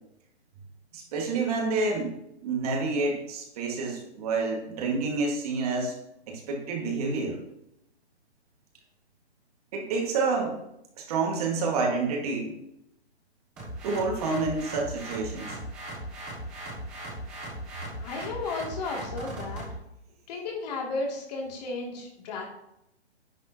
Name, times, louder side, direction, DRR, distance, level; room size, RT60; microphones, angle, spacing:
voice 1, 0.9-2.1 2.4-6.0 6.3-7.4 9.7-10.6 11.0-12.6 13.8-15.6, right 3 dB, 35° right, 0 dB, 1.9 m, -28 dB
sound 1, 13.6-19.8, right 1 dB, 5° right, 0.4 m, -38 dB
voice 2, 18.0-19.6 20.3-22.4, left 3 dB, 35° left, -1 dB, 2.7 m, -34 dB
10.5 x 9.3 x 2.9 m, 0.80 s
hypercardioid pair, 160°, 34 cm